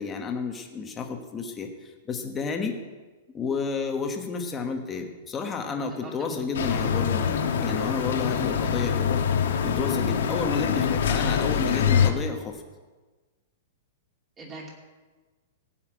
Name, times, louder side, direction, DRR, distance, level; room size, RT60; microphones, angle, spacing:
voice 1, 0.0-2.7 3.3-7.3 7.6-9.2 9.6-12.6, left 5 dB, 15° left, 4 dB, 1.3 m, -31 dB
voice 2, 5.7-6.4 14.4-14.7, right 2 dB, 15° right, -1 dB, 2.6 m, -42 dB
sound 1, 6.5-12.1, left 7 dB, 80° left, 1.5 m, -24 dB
16.0 x 5.8 x 8.9 m, 1.3 s
supercardioid pair, 170°, 0 cm